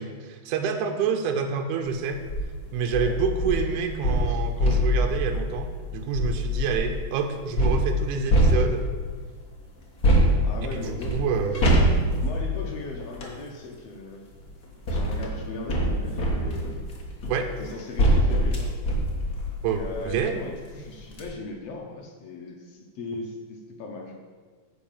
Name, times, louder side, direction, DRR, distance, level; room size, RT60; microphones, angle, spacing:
voice 1, 0.0-2.2 2.7-8.9 10.7-11.7 17.3-17.6 19.6-20.4, right 6 dB, 80° right, 5 dB, 2.2 m, -27 dB
sound 1, 2.1-2.4 2.9-7.0 7.6-9.1 10.0-13.4 14.3-20.3 20.7-20.8 21.1-21.2, equal, 45° left, 1.2 m, -24 dB
voice 2, 10.4-11.2 11.5-11.6 12.2-14.2 14.9-16.8 17.6-18.7 19.6-24.1, left 3 dB, 65° left, 1 dB, 1.8 m, -38 dB
9.6 x 5.1 x 7.2 m, 1.5 s
omnidirectional pair, 3.6 m